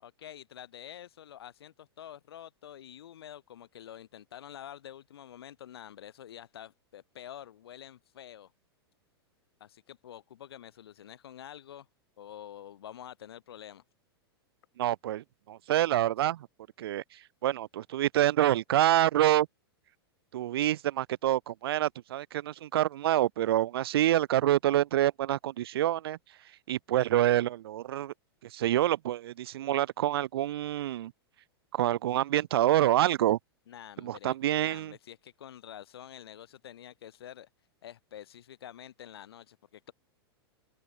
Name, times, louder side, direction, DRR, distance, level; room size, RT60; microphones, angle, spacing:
voice 1, 0.0-8.5 9.6-11.9 12.2-13.8 33.7-37.5 37.8-39.9, left 10 dB, 70° left, 6.4 m, -48 dB
voice 2, 14.8-16.5 16.8-17.0 17.4-19.5 20.3-26.2 26.7-28.1 28.5-31.1 31.7-33.4 34.0-34.9, right 13 dB, 65° right, 0.5 m, -27 dB
open air
hypercardioid pair, 100°, 13 cm